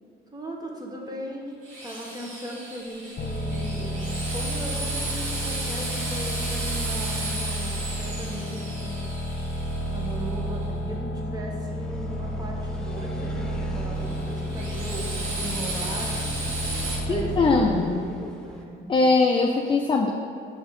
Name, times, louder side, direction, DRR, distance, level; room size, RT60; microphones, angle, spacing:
voice 1, 0.3-9.1 9.9-16.2 17.0-18.9, right 1 dB, 20° right, -1 dB, 1.3 m, -38 dB
Drill, 1.6-10.6 14.0-17.0, right 2 dB, 75° right, 1.5 m, -34 dB
sound 1, 3.2-17.9, equal, 50° left, 1.0 m, -31 dB
sound 2, 11.3-18.7, equal, 5° left, 0.8 m, -45 dB
voice 2, 17.1-18.0 18.9-20.1, left 3 dB, 25° left, 1 dB, 0.5 m, -21 dB
6.3 x 3.5 x 5.4 m, 2.5 s
cardioid pair, 90°, 20 cm